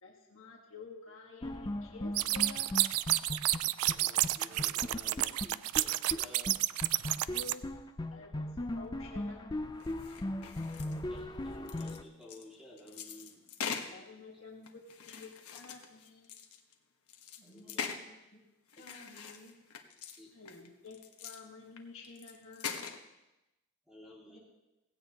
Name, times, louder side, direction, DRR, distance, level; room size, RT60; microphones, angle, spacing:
voice 1, 0.0-2.8 7.3-7.8 8.1-9.8 13.9-16.4 20.3-22.8, left 3 dB, 65° left, -1 dB, 1.6 m, -51 dB
sound 1, 1.4-4.0 4.2-4.3 4.6-6.2 6.5-6.6 6.8-12.0, left 1 dB, 20° left, 0.4 m, -38 dB
sound 2, 2.1-7.5, right 16 dB, 80° right, 0.4 m, -30 dB
voice 2, 3.8-6.6 10.8-13.5 13.8-14.0 17.4-17.9 20.2-20.3 23.9-24.4, left 1 dB, 5° right, -5 dB, 2.4 m, -53 dB
sound 3, 9.8-11.2 11.5-13.9 14.6-16.7 17.1-18.0 18.7-20.2 20.5-21.4 21.7-21.8 22.0-23.0, left 6 dB, 85° left, 1.2 m, -42 dB
voice 3, 17.4-18.4 18.8-19.5 24.3-24.4, left 1 dB, 35° left, -4 dB, 5.1 m, -56 dB
17.0 x 16.0 x 2.9 m, 0.98 s
head